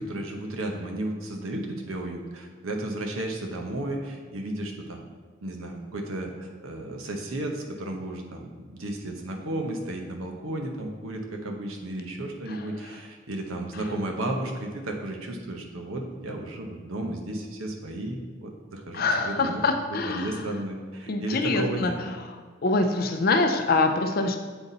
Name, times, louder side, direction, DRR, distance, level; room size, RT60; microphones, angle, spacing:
voice 1, 0.0-5.0 5.4-22.0, right 1 dB, 85° right, 2 dB, 0.9 m, -33 dB
voice 2, 18.9-20.4 21.1-21.9 22.6-24.4, left 3 dB, 45° left, 6 dB, 0.5 m, -24 dB
7.8 x 4.1 x 4.0 m, 1.5 s
head